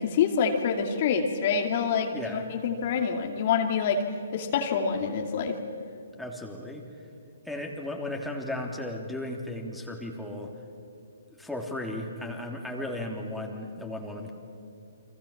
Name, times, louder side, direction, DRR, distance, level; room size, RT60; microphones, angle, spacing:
voice 1, 0.0-4.0 4.3-5.6, left 6 dB, 45° left, 4 dB, 2.5 m, -26 dB
voice 2, 2.1-2.5 6.2-6.8 7.4-10.5 11.4-14.3, left 1 dB, ahead, -1 dB, 3.3 m, -35 dB
30.0 x 24.0 x 7.4 m, 2.4 s
figure-of-eight pair, 135°, 0 cm